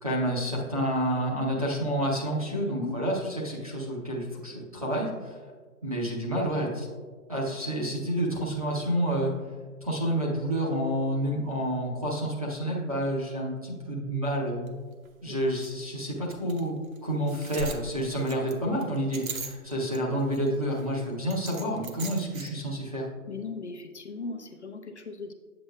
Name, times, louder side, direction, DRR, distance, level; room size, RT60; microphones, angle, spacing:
voice 1, 0.0-5.4 5.8-6.9 7.3-9.3 9.8-14.7 15.2-23.1, equal, 25° right, -4 dB, 0.6 m, -29 dB
sound 1, 14.7-14.8 15.0-15.1 15.6-15.7 16.3-16.6 17.0-17.1 17.3-20.0 20.3-20.8 21.3-22.5, right 3 dB, 65° right, 0.9 m, -38 dB
voice 2, 23.3-25.3, left 4 dB, 50° left, 4 dB, 0.6 m, -38 dB
8.6 x 7.7 x 2.2 m, 1.5 s
hypercardioid pair, 175°, 45 cm